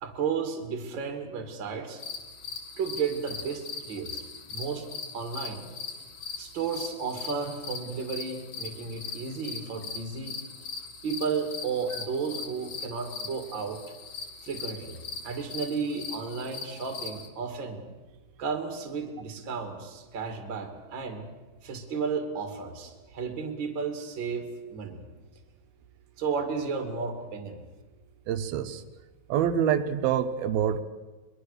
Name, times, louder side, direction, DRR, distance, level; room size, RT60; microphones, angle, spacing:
voice 1, 0.0-2.0 2.8-4.2 4.5-4.9 5.1-5.7 6.4-10.4 11.0-13.8 14.4-15.0 15.2-17.8 18.4-21.3 21.6-25.1 26.2-27.6, right 5 dB, 35° right, 6 dB, 2.6 m, -33 dB
sound 1, 2.0-17.3, left 5 dB, 45° left, 1.8 m, -40 dB
voice 2, 28.3-28.8 29.3-30.8, right 9 dB, 80° right, 11 dB, 2.8 m, -26 dB
22.5 x 22.0 x 6.7 m, 1.2 s
omnidirectional pair, 4.3 m